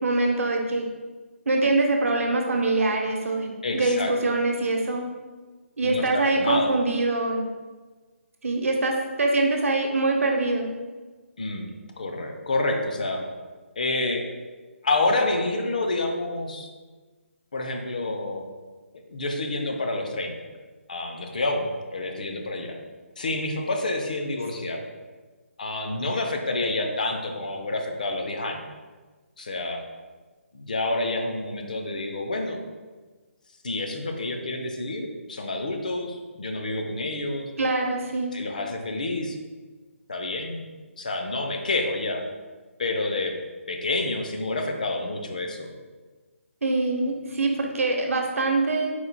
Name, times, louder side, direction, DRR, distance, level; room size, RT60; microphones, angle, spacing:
voice 1, 0.0-0.8 1.5-5.1 5.8-7.4 8.4-10.7 37.6-38.3 46.6-48.9, right 2 dB, 75° right, 2 dB, 0.7 m, -24 dB
voice 2, 3.6-4.1 5.8-6.7 11.4-13.2 13.8-14.3 14.8-16.7 17.5-18.5 19.1-20.3 20.9-22.8 23.2-24.8 25.6-28.6 29.4-29.8 30.5-32.6 33.6-37.5 38.3-39.4 40.1-42.2 42.8-43.4 43.7-45.7, left 2 dB, 35° left, 3 dB, 0.4 m, -28 dB
4.3 x 2.2 x 3.9 m, 1.3 s
hypercardioid pair, 175°, 7 cm